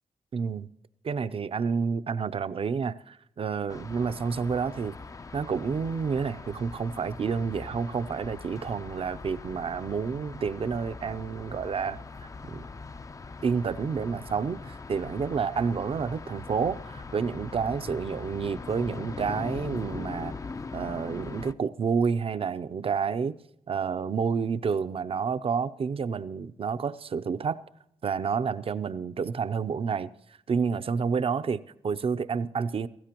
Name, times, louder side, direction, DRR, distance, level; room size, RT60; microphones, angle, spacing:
voice 1, 0.3-0.7 1.0-5.0 5.3-12.0 12.4-12.7 13.4-20.4 20.7-23.4 23.7-27.6 28.0-30.1 30.5-32.9, right 6 dB, 50° right, 0.5 m, -29 dB
sound 1, 3.7-21.5, left 4 dB, 30° left, 0.4 m, -41 dB
18.5 x 15.5 x 2.9 m
cardioid pair, 85°, 12 cm